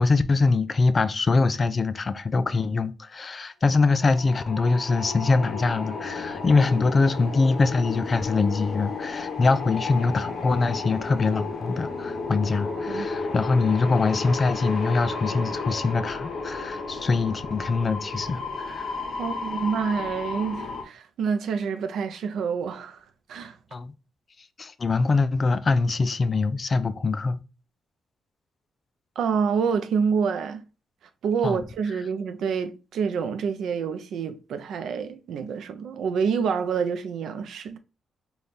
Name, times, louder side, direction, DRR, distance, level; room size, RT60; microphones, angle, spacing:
voice 1, 0.0-18.9 23.7-23.9 24.6-27.4 31.4-31.6, left 3 dB, 35° left, 0.3 m, -23 dB
sound 1, 3.9-20.8, left 4 dB, 55° left, 0.8 m, -33 dB
voice 2, 19.2-23.0 23.3-23.6 29.2-30.6 31.2-37.8, right 6 dB, 75° right, 0.5 m, -27 dB
4.1 x 2.3 x 3.4 m
cardioid pair, 120°, 0 cm